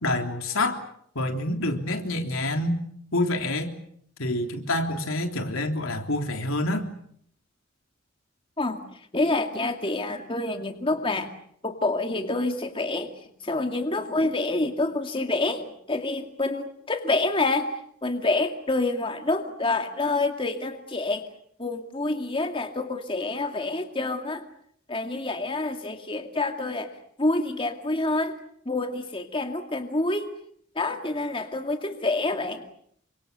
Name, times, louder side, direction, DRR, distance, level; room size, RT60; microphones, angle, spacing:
voice 1, 0.0-0.8 1.2-2.8 3.1-3.7 4.2-6.9, left 1 dB, 80° left, 5 dB, 3.4 m, -27 dB
voice 2, 9.1-11.3 11.6-13.1 13.4-17.7 18.0-21.2 21.6-24.4 24.9-26.9 27.2-28.3 28.7-30.3 30.8-32.6, left 2 dB, 25° left, 5 dB, 2.2 m, -27 dB
29.5 x 25.5 x 6.8 m, 0.67 s
head